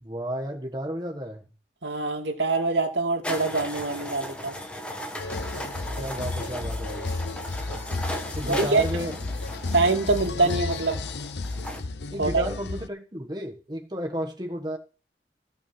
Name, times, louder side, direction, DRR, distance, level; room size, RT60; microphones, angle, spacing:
voice 1, 0.0-1.5 5.9-7.1 8.4-9.2 12.1-14.8, equal, 25° right, 1 dB, 1.3 m, -32 dB
voice 2, 1.8-4.6 8.5-8.8 9.7-11.0 12.2-12.5, right 3 dB, 80° right, 3 dB, 2.6 m, -24 dB
sound 1, 3.2-11.8, equal, 5° left, 1.4 m, -37 dB
sound 2, 5.2-12.9, left 3 dB, 70° left, 0.8 m, -33 dB
15.0 x 5.6 x 7.4 m, 0.36 s
head